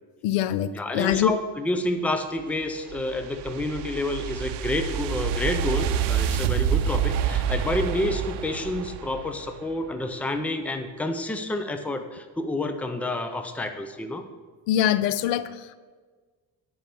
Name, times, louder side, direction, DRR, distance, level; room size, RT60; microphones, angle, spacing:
voice 1, 0.2-1.4 14.7-15.8, left 11 dB, 80° left, 15 dB, 0.6 m, -24 dB
voice 2, 0.7-14.3, left 1 dB, 5° left, 7 dB, 0.5 m, -29 dB
sound 1, 2.4-9.7, right 8 dB, 70° right, 0.7 m, -28 dB
9.2 x 5.5 x 6.9 m, 1.5 s
cardioid pair, 140°, 43 cm